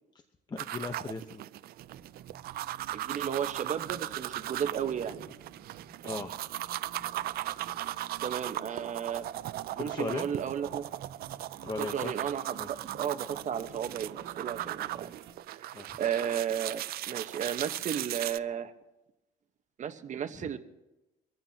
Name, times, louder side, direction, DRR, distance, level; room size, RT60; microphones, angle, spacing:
voice 1, 0.5-1.4 6.0-6.3 9.8-10.3 11.6-12.1 12.6-12.7 15.7-16.0 20.4-20.5, left 3 dB, 25° left, 6 dB, 1.0 m, -37 dB
sound 1, 0.6-18.4, right 14 dB, 65° right, 0.5 m, -38 dB
sound 2, 1.7-15.3, right 8 dB, 80° right, 1.4 m, -51 dB
voice 2, 2.9-5.2 8.2-9.3 9.8-10.8 11.8-15.1 15.5-18.7 19.8-20.6, right 8 dB, 45° right, 8 dB, 1.2 m, -34 dB
25.0 x 15.0 x 2.9 m, 0.98 s
cardioid pair, 110°, 17 cm